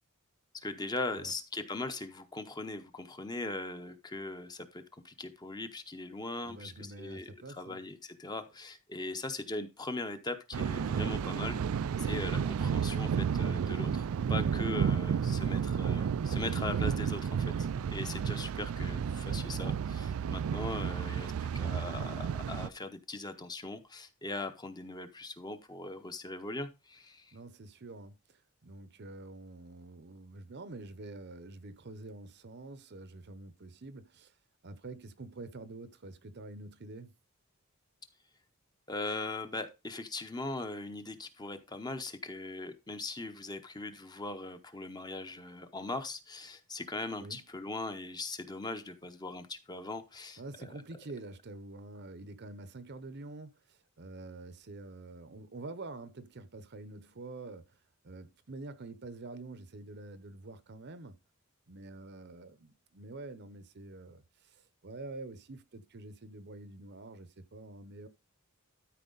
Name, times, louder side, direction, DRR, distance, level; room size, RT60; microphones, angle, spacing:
voice 1, 0.5-11.6 12.0-27.4 38.9-50.7, left 2 dB, 20° left, 0.8 m, -40 dB
voice 2, 6.4-7.8 27.3-34.3 34.6-37.1 47.2-47.4 50.4-57.8 58.0-61.2 61.7-68.1, right 2 dB, 50° right, 0.7 m, -47 dB
Thunder, 10.5-22.7, right 7 dB, 70° right, 0.3 m, -32 dB
13.0 x 4.5 x 3.9 m
head